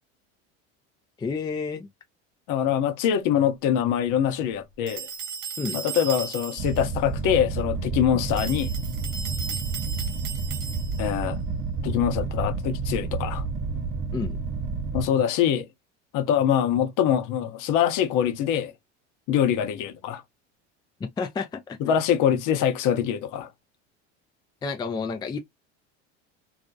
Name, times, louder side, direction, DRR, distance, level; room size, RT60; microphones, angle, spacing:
voice 1, 1.2-1.9 5.6-5.8 14.1-14.4 21.0-21.8 24.6-25.4, left 4 dB, 10° left, 0.4 m, -30 dB
voice 2, 2.5-5.1 5.7-8.7 11.0-11.4 11.8-13.4 14.9-15.7 16.1-18.7 19.3-20.2 21.8-23.5, left 9 dB, 55° left, 0.7 m, -24 dB
sound 1, 4.9-6.8 8.3-11.2, right 6 dB, 85° right, 0.9 m, -36 dB
sound 2, 6.6-15.1, right 4 dB, 30° right, 1.0 m, -30 dB
2.4 x 2.0 x 2.6 m
supercardioid pair, 95°, 36 cm